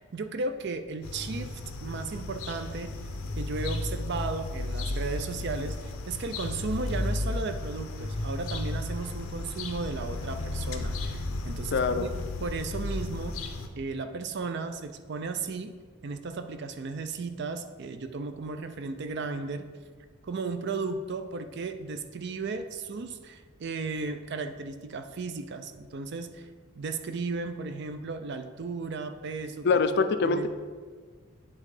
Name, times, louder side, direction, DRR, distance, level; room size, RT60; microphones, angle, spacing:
voice 1, 0.0-3.0 3.4-12.1 12.4-13.4 13.8-15.7 16.0-19.7 20.2-26.5 26.8-29.7 30.2-30.5, right 4 dB, 55° right, 9 dB, 0.5 m, -35 dB
sound 1, 1.0-13.7, left 2 dB, 85° left, 0.7 m, -34 dB
voice 2, 11.7-12.1 29.6-30.5, left 4 dB, 55° left, 9 dB, 0.4 m, -24 dB
8.7 x 3.6 x 4.9 m, 1.5 s
head